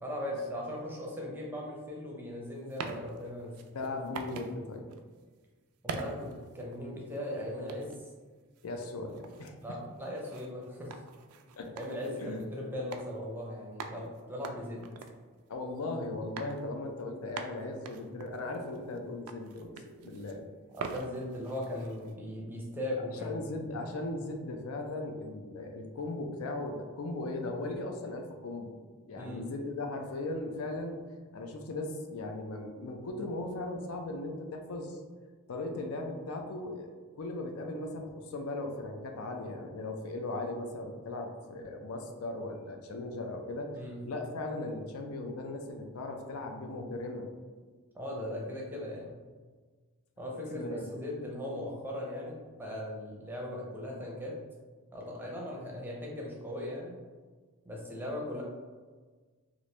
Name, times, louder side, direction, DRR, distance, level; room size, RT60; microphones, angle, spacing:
voice 1, 0.0-3.5 5.8-8.0 8.9-9.0 9.6-11.0 11.8-14.8 20.7-23.4 29.2-29.5 43.7-44.0 47.9-49.2 50.2-54.3 54.9-57.0 57.7-58.4, left 1 dB, 10° right, -3 dB, 0.5 m, -38 dB
sound 1, 2.5-4.6 4.9-5.1 5.9-7.2 7.7-8.1 8.6-12.5 12.9-13.1 13.3-13.4 13.8-15.9 16.4-16.6 17.0-17.1 17.4-19.0 19.3-20.4 20.7-22.1, right 5 dB, 85° right, 0.3 m, -44 dB
voice 2, 3.7-4.9 8.6-9.8 11.6-11.9 12.2-12.4 15.5-20.4 23.2-28.7 29.1-31.0 31.3-35.0 35.5-36.9 37.2-43.7 44.0-47.3 50.5-50.9, left 2 dB, 80° left, 4 dB, 0.4 m, -38 dB
3.0 x 2.5 x 3.1 m, 1.4 s
head